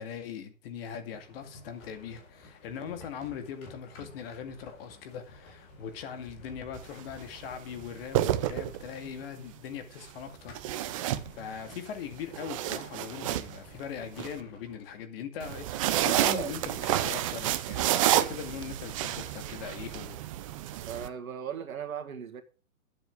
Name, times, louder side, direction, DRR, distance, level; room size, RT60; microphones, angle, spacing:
voice 1, 0.0-10.5 11.0-11.1 11.4-20.2, left 7 dB, 45° left, 2.2 m, -40 dB
sound 1, 1.1-15.0, left 2 dB, 30° left, 4.0 m, -53 dB
sound 2, 6.7-7.0 7.9-9.1 10.5-11.8 12.2-14.3 15.4-21.1, right 13 dB, 25° right, 0.5 m, -30 dB
voice 2, 16.1-16.9 20.8-22.4, right 8 dB, 80° right, 2.0 m, -38 dB
11.5 x 7.5 x 4.8 m
hypercardioid pair, 140°, 41 cm